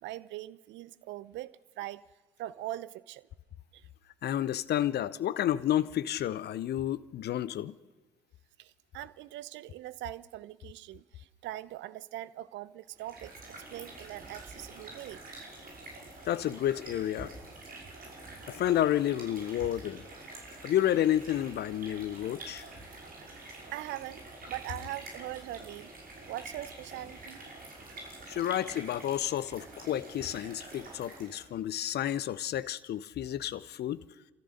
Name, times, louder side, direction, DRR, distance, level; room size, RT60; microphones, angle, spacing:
voice 1, 0.0-2.0 2.4-3.3 3.7-3.9 8.6-15.2 23.7-25.9 26.3-27.4, right 14 dB, 60° right, 0.7 m, -42 dB
voice 2, 4.2-7.8 16.3-17.3 18.5-20.0 20.6-22.6 28.3-34.0, left 12 dB, 50° left, 0.8 m, -30 dB
sound 1, 12.9-31.5, right 2 dB, 45° right, 5.7 m, -47 dB
30.0 x 13.5 x 6.6 m
figure-of-eight pair, 45°, 21 cm